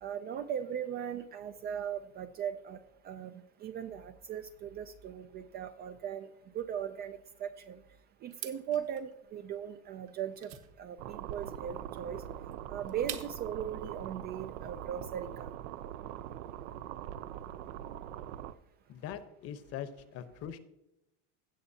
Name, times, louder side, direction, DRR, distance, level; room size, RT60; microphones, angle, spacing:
voice 1, 0.0-2.8 3.0-6.3 6.5-7.8 8.2-10.5 10.8-12.2 12.7-15.5, right 9 dB, 30° right, 10 dB, 0.3 m, -38 dB
sound 1, 8.3-13.6, right 12 dB, 50° right, 1.2 m, -47 dB
sound 2, 11.0-18.5, right 11 dB, 80° right, 0.6 m, -42 dB
voice 2, 18.9-20.6, left 9 dB, 40° left, 11 dB, 0.9 m, -42 dB
16.5 x 6.7 x 2.7 m, 0.89 s
supercardioid pair, 135°, 36 cm